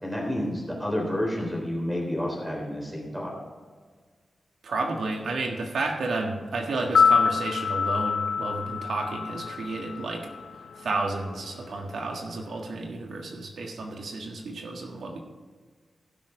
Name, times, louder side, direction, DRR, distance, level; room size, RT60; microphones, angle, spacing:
voice 1, 0.0-3.3, left 1 dB, 5° right, -2 dB, 3.5 m, -30 dB
voice 2, 4.6-10.3 10.8-15.2, right 3 dB, 80° right, 1 dB, 1.6 m, -31 dB
sound 1, 6.8-11.0 11.2-11.3, left 5 dB, 75° left, 0.7 m, -26 dB
16.0 x 6.5 x 4.9 m, 1.5 s
wide cardioid pair, 180°, 0 cm